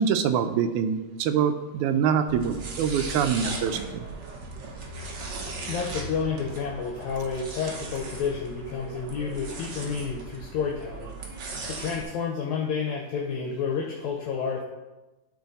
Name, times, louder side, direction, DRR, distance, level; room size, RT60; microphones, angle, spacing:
voice 1, 0.0-4.1, right 7 dB, 90° right, 10 dB, 2.0 m, -25 dB
sound 1, 2.3-12.0, right 3 dB, 55° right, 1.2 m, -38 dB
voice 2, 5.7-11.2 11.7-14.6, left 6 dB, 75° left, -1 dB, 2.1 m, -30 dB
12.0 x 4.2 x 4.0 m, 1.1 s
omnidirectional pair, 3.3 m